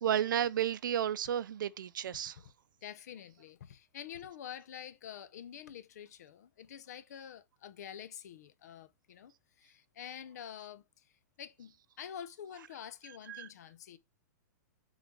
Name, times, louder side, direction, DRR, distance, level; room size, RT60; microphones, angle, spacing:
voice 1, 0.0-2.4 13.3-13.5, right 10 dB, 85° right, 0.6 m, -32 dB
voice 2, 2.8-14.0, left 9 dB, 55° left, 0.8 m, -48 dB
8.1 x 4.0 x 4.7 m
supercardioid pair, 175°, 10 cm